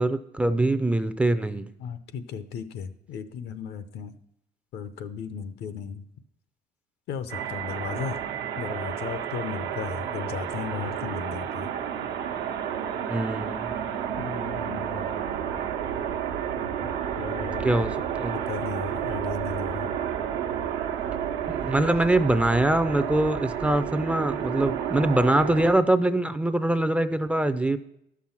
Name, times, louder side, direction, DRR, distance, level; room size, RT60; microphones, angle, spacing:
voice 1, 0.0-1.7 13.1-13.7 17.6-18.3 21.5-27.8, right 1 dB, 5° right, 11 dB, 0.4 m, -23 dB
voice 2, 1.8-4.1 4.7-6.0 7.1-8.2 8.6-11.7 14.2-15.1 16.8-17.7 18.3-19.9, left 7 dB, 75° left, 12 dB, 0.8 m, -35 dB
sound 1, 7.3-25.8, right 9 dB, 85° right, 1.0 m, -31 dB
12.5 x 6.1 x 5.8 m, 0.78 s
cardioid pair, 110°, 17 cm